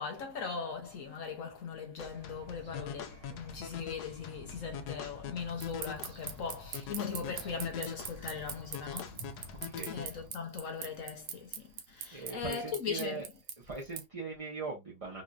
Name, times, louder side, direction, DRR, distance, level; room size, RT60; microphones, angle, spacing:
voice 1, 0.0-9.2 9.9-13.2, left 6 dB, 60° left, 1.0 m, -39 dB
sound 1, 2.0-10.0, left 8 dB, 80° left, 1.2 m, -44 dB
sound 2, 2.0-10.3, equal, 65° right, 2.1 m, -52 dB
sound 3, 5.6-14.0, right 8 dB, 85° right, 1.3 m, -40 dB
voice 2, 9.7-10.2 12.1-13.2 13.6-15.2, right 4 dB, 25° right, 0.9 m, -40 dB
4.0 x 2.9 x 2.4 m
omnidirectional pair, 1.7 m